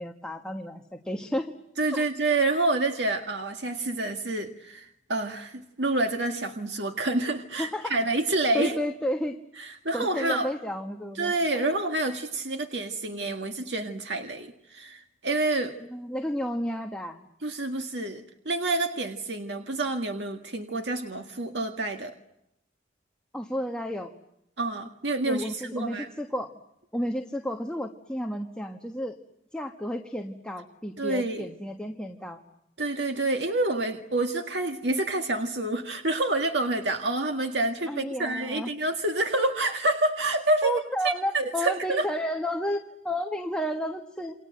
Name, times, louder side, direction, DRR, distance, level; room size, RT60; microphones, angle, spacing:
voice 1, 0.0-1.5 1.9-2.0 7.6-8.0 8.5-9.4 9.9-11.7 15.9-17.3 23.3-24.1 25.3-26.5 26.9-29.2 29.5-32.4 37.9-38.7 40.6-44.3, equal, 5° left, 3 dB, 1.4 m, -32 dB
voice 2, 1.8-8.7 9.6-10.5 11.2-15.7 17.4-22.1 24.6-26.1 31.0-31.5 32.8-42.1, right 2 dB, 75° right, 4 dB, 1.9 m, -28 dB
28.5 x 25.5 x 7.8 m, 0.83 s
head